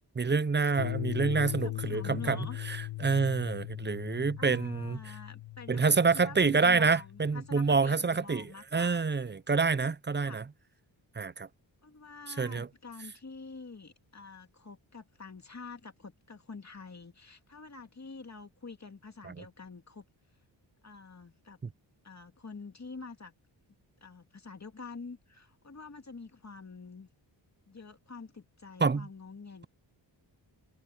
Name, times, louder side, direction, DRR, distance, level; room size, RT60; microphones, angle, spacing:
voice 1, 0.2-5.1 5.7-10.4 11.2-11.5 12.3-12.7 19.2-19.4 28.8-29.1, right 4 dB, 25° right, 0.6 m, -27 dB
sound 1, 0.8-7.8, left 16 dB, 85° left, 1.7 m, -39 dB
voice 2, 1.4-2.6 4.4-9.0 10.2-10.4 11.8-20.0 20.8-21.6 22.0-23.3 24.0-27.1 27.7-29.7, left 4 dB, 35° left, 2.5 m, -47 dB
cardioid pair, 75°, 46 cm